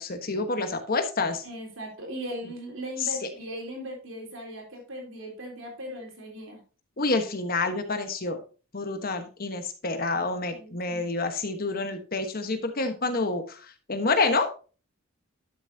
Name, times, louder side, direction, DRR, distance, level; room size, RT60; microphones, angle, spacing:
voice 1, 0.0-1.4 3.0-3.1 7.0-8.4 8.7-14.5, left 3 dB, 45° left, 8 dB, 1.2 m, -28 dB
voice 2, 1.4-6.6 10.5-11.0, equal, 65° right, 1 dB, 3.4 m, -38 dB
11.5 x 7.0 x 2.7 m, 0.35 s
head